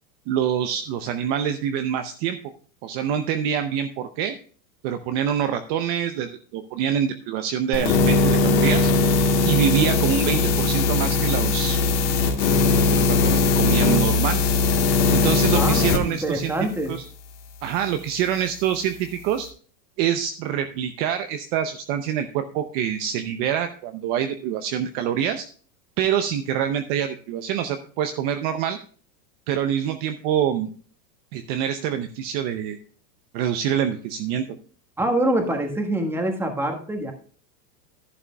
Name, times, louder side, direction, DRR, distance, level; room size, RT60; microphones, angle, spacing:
voice 1, 0.3-2.4 2.8-4.3 4.8-8.9 9.5-11.8 12.9-14.4 15.1-16.5 16.9-17.0 17.6-19.5 20.0-25.5 26.0-28.8 29.5-30.7 31.3-32.8 33.3-34.5, right 9 dB, 35° right, 8 dB, 0.7 m, -25 dB
sound 1, 7.7-16.0, left 3 dB, 75° left, 2.2 m, -19 dB
voice 2, 15.5-17.0 35.0-37.1, right 1 dB, 5° right, 3 dB, 1.4 m, -25 dB
11.0 x 11.0 x 2.3 m, 0.43 s
supercardioid pair, 145°, 50 cm